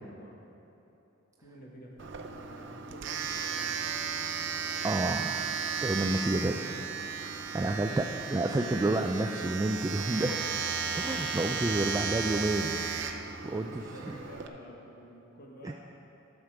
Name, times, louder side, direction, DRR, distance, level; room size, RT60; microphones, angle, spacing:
voice 1, 0.1-0.4 1.4-3.8 5.7-5.8 6.2-7.2 7.6-8.0 13.9-15.7, equal, 50° left, -1 dB, 1.4 m, -50 dB
Domestic sounds home sounds, 2.0-14.5, right 6 dB, 65° right, 0.6 m, -35 dB
voice 2, 4.8-5.4 5.8-6.6 7.5-8.0 8.3-10.5 10.9-12.7 13.4-13.9 15.6-15.7, right 2 dB, 15° right, 3 dB, 0.3 m, -29 dB
12.5 x 6.6 x 4.7 m, 3.0 s
head